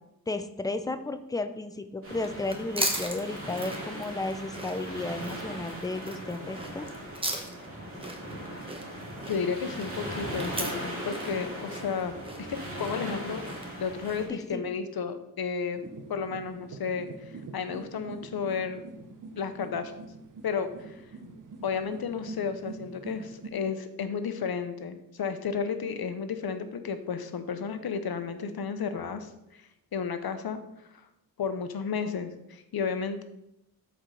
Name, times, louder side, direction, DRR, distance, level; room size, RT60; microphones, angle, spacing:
voice 1, 0.3-6.9 14.3-14.7, left 2 dB, 10° left, 9 dB, 0.4 m, -33 dB
sound 1, 2.0-14.3, equal, 40° right, 2.4 m, -39 dB
sound 2, 2.1-14.4, right 1 dB, 15° right, 1.0 m, -38 dB
voice 2, 9.3-13.5 13.8-15.8 16.1-18.8 19.4-19.9 20.4-21.0 21.6-30.6 31.4-33.2, left 6 dB, 85° left, 9 dB, 0.8 m, -33 dB
sound 3, 15.7-23.5, right 3 dB, 60° right, 0.9 m, -45 dB
12.5 x 4.7 x 3.8 m, 0.86 s
wide cardioid pair, 175°, 36 cm